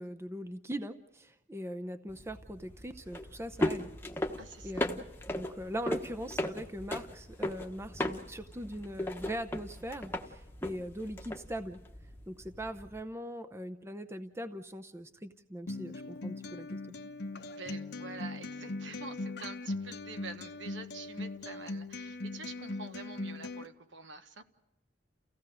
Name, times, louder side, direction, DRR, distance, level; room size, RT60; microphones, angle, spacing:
voice 1, 0.0-3.9 4.6-11.8 12.3-16.8, equal, 15° right, 8 dB, 0.7 m, -41 dB
sound 1, 2.1-13.0, left 1 dB, 10° left, 1.1 m, -38 dB
voice 2, 4.4-4.9 17.3-24.4, right 4 dB, 70° right, 8 dB, 1.3 m, -47 dB
Acoustic guitar, 15.7-23.7, left 2 dB, 60° left, 0.9 m, -40 dB
29.5 x 16.0 x 6.4 m, 0.92 s
head